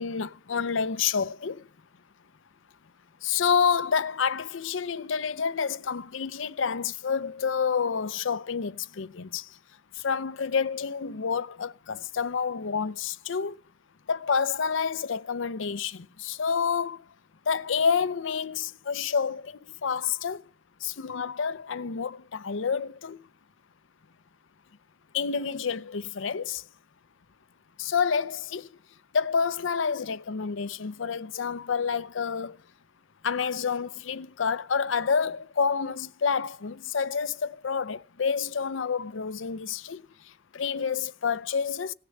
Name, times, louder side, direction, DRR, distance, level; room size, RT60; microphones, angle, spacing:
voice 1, 0.0-1.7 3.2-9.6 10.0-13.6 14.1-17.0 17.5-20.4 20.8-23.2 25.1-26.7 27.8-28.7 29.1-32.6 33.2-41.9, left 6 dB, 90° left, 0.6 m, -28 dB
17.0 x 6.7 x 9.0 m
head